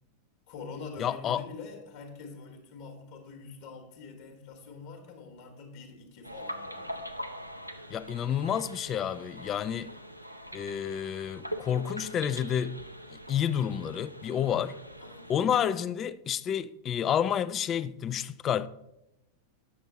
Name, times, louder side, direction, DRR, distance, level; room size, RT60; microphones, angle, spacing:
voice 1, 0.5-7.0 15.0-15.3, left 4 dB, 50° left, 1.3 m, -45 dB
voice 2, 1.0-1.5 7.9-9.9 10.5-12.8 13.3-14.8 15.3-18.7, left 9 dB, 30° left, 0.3 m, -29 dB
sound 1, 6.2-15.4, equal, 90° right, 0.5 m, -42 dB
8.5 x 6.2 x 4.1 m
figure-of-eight pair, 90°, 0 cm